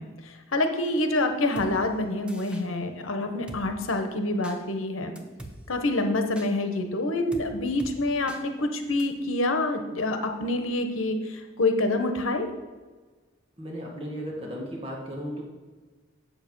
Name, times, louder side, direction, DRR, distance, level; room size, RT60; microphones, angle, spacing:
voice 1, 0.0-5.1 5.7-12.5, left 2 dB, 80° left, 6 dB, 1.0 m, -27 dB
Drum kit, 1.6-1.7 2.3-2.6 3.5-3.6 4.4-4.6 5.2-5.5 6.4-6.5 7.3-7.5 7.8-7.9 8.3-8.4 9.0-9.1, right 1 dB, 5° right, 0.6 m, -42 dB
voice 2, 13.6-15.4, equal, 25° right, -2 dB, 1.6 m, -35 dB
7.8 x 7.3 x 5.4 m, 1.4 s
head